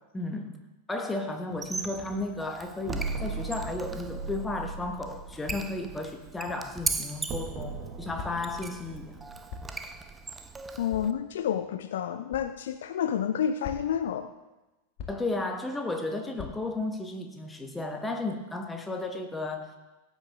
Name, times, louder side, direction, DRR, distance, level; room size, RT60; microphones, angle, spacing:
voice 1, 0.1-0.6 0.9-9.2 15.1-19.8, left 2 dB, 10° left, 5 dB, 1.4 m, -34 dB
Squeak, 1.5-11.1, right 3 dB, 15° right, 0.6 m, -39 dB
sound 1, 2.8-6.9 7.2-10.6, right 4 dB, 30° right, 1.9 m, -39 dB
sound 2, 5.5-5.8 6.8-7.1 8.2-8.6 9.5-9.9 10.9-11.1 12.3-12.5 13.6-14.1 15.0-15.4 16.4-16.6, left 6 dB, 40° left, 1.6 m, -41 dB
voice 2, 10.8-14.3, left 8 dB, 60° left, 11 dB, 0.5 m, -29 dB
17.0 x 9.0 x 3.6 m, 1.1 s
figure-of-eight pair, 90°, 0 cm